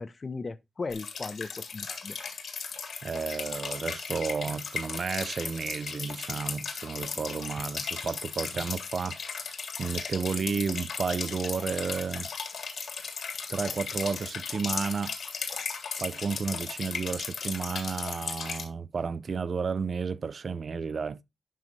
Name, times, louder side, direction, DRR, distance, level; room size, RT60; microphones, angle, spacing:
voice 1, 0.0-2.2, left 4 dB, 35° left, 0.5 m, -37 dB
sound 1, 0.9-18.6, left 5 dB, 75° left, 1.7 m, -36 dB
voice 2, 3.0-9.2 9.8-12.3 13.5-15.1 16.0-21.2, right 5 dB, 50° right, 0.4 m, -32 dB
11.0 x 5.3 x 3.1 m
wide cardioid pair, 140°, 0 cm